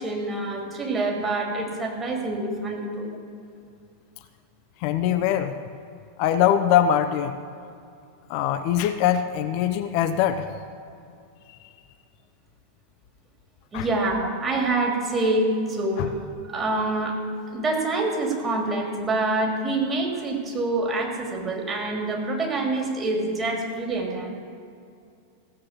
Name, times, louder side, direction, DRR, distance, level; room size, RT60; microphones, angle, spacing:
voice 1, 0.0-3.1 13.7-17.2 17.5-24.3, right 2 dB, 20° right, 0 dB, 2.9 m, -26 dB
voice 2, 4.8-5.5 6.2-7.4 8.3-10.5 11.5-11.6 13.7-13.9 16.0-16.1, left 10 dB, 45° left, 9 dB, 0.6 m, -22 dB
16.0 x 7.5 x 7.4 m, 2.5 s
figure-of-eight pair, 90°, 0 cm